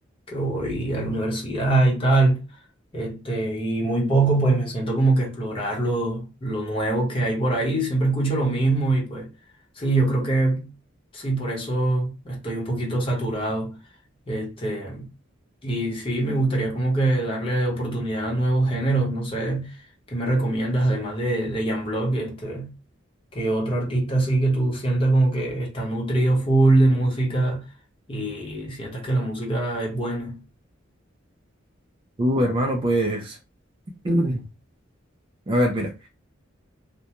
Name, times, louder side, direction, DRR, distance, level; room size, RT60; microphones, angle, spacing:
voice 1, 0.3-2.4 2.9-9.3 9.8-10.7 11.1-13.7 14.3-15.1 15.6-19.7 20.1-22.7 23.3-27.6 28.1-30.4, right 2 dB, 30° left, 0.8 m, -23 dB
voice 2, 32.2-33.4 34.0-34.5 35.5-36.1, equal, 25° right, 0.3 m, -23 dB
2.2 x 2.1 x 2.8 m
head